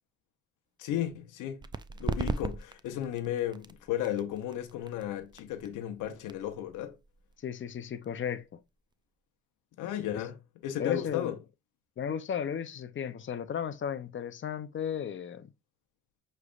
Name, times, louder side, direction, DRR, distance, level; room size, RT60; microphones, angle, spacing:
voice 1, 0.8-1.6 2.0-6.9 9.8-11.4, left 11 dB, 90° left, 0.8 m, -34 dB
sound 1, 1.6-8.9, right 4 dB, 15° right, 0.3 m, -39 dB
voice 2, 7.4-8.6 10.8-11.4 12.0-15.5, left 8 dB, 40° left, 0.6 m, -35 dB
6.1 x 3.3 x 2.4 m
cardioid pair, 90°, 30 cm